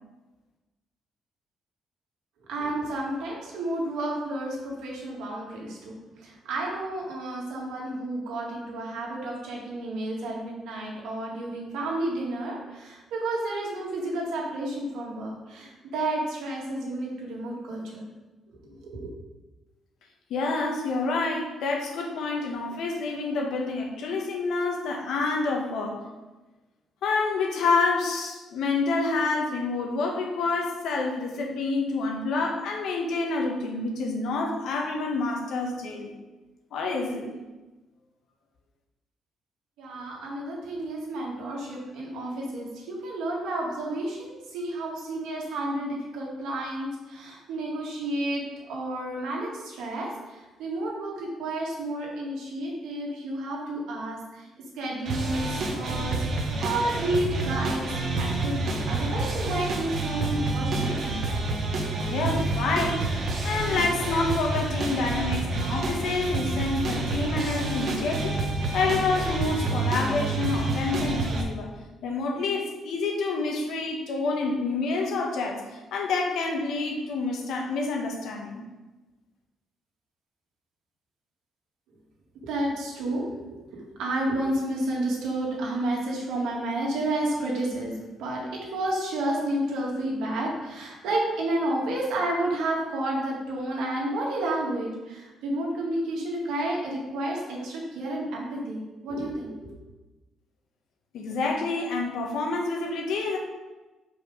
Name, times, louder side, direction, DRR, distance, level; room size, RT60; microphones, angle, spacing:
voice 1, 2.5-18.1 18.5-19.1 39.8-54.5 54.7-56.2 56.6-57.8 58.2-61.2 82.4-83.4 83.7-99.7, right 1 dB, 90° right, -2 dB, 2.0 m, -31 dB
voice 2, 20.3-26.0 27.0-36.1 36.7-37.4 62.1-68.4 68.7-71.7 72.0-78.6 101.1-103.4, left 3 dB, 80° left, 1 dB, 1.4 m, -28 dB
sound 1, 55.1-71.4, right 2 dB, 60° right, 1.3 m, -28 dB
5.8 x 5.0 x 5.3 m, 1.1 s
cardioid pair, 90°, 0 cm